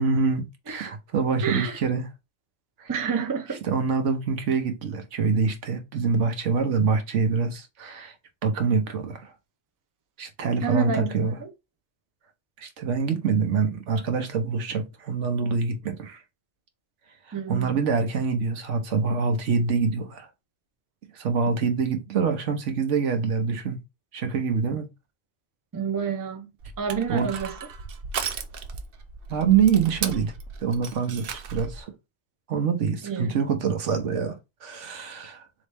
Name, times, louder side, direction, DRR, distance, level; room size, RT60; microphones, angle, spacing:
voice 1, 0.0-2.1 2.8-2.9 3.7-8.1 8.4-9.3 10.2-11.3 12.6-16.2 17.3-20.3 21.1-23.8 24.1-24.9 27.1-27.3 29.3-30.3 30.6-31.9 32.5-35.5, right 5 dB, 80° right, 1.2 m, -25 dB
voice 2, 1.4-1.8 2.9-3.6 10.6-11.5 17.3-17.8 25.7-26.5 26.8-27.6 33.0-33.4, right 6 dB, 25° right, 0.5 m, -29 dB
Crushing, 26.6-31.8, right 5 dB, 60° right, 0.7 m, -35 dB
4.1 x 3.1 x 3.3 m
omnidirectional pair, 1.2 m